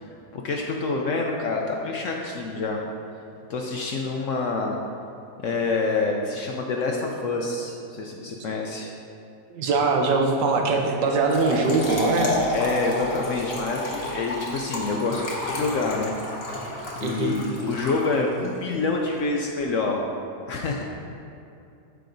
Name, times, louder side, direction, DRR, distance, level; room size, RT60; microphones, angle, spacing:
voice 1, 0.1-2.9 3.5-4.8 5.4-8.9 12.5-16.1 16.5-16.7 17.0-20.0 20.5-20.8, left 3 dB, 70° left, 0 dB, 0.7 m, -27 dB
voice 2, 9.5-12.3 17.0-17.4, right 3 dB, 90° right, 2 dB, 1.4 m, -22 dB
Trickle dribble / Fill (with liquid), 11.1-18.5, left 2 dB, 40° left, 1.1 m, -30 dB
12.5 x 4.7 x 2.6 m, 2.6 s
omnidirectional pair, 1.8 m